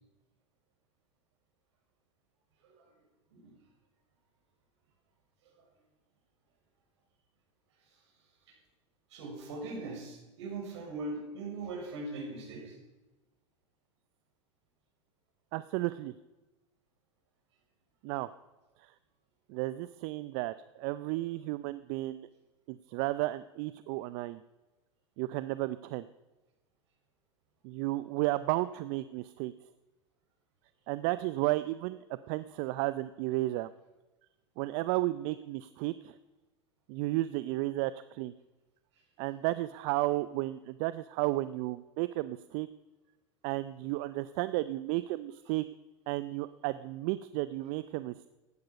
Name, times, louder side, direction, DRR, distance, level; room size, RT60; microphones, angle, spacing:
voice 1, 9.1-12.8, right 2 dB, 75° right, 0 dB, 6.2 m, -40 dB
voice 2, 15.5-16.1 18.0-18.3 18.8-18.9 19.5-22.3 22.7-24.4 25.2-26.1 27.6-29.5 30.9-33.7 34.6-36.1 36.9-38.3 39.2-42.7 43.4-45.6 46.1-48.3, right 18 dB, 55° right, 15 dB, 0.5 m, -33 dB
15.0 x 11.5 x 5.3 m, 1.1 s
hypercardioid pair, 90°, 15 cm